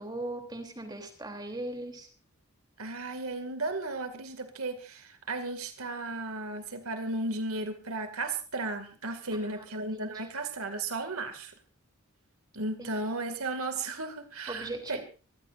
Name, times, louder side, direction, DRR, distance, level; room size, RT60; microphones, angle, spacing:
voice 1, 0.0-2.1 9.3-9.6 12.8-12.9 14.5-15.0, right 2 dB, 20° right, 5 dB, 3.0 m, -39 dB
voice 2, 2.8-11.5 12.6-15.0, right 2 dB, 80° right, 7 dB, 2.2 m, -35 dB
25.0 x 15.0 x 2.6 m, 0.35 s
head